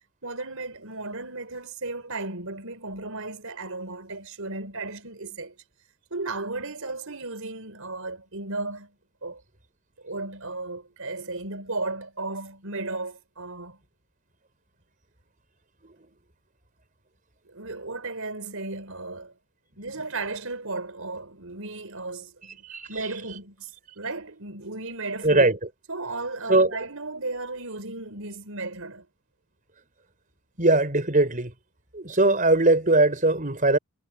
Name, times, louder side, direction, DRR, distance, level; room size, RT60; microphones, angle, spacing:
voice 1, 0.2-5.6 6.1-8.9 9.2-9.4 10.0-13.8 17.4-19.3 19.8-22.6 22.9-25.5 25.9-29.1, right 3 dB, 70° right, 5.0 m, -35 dB
voice 2, 25.2-25.6 26.5-26.7 30.6-31.5 31.9-33.8, right 2 dB, 35° right, 5.2 m, -20 dB
head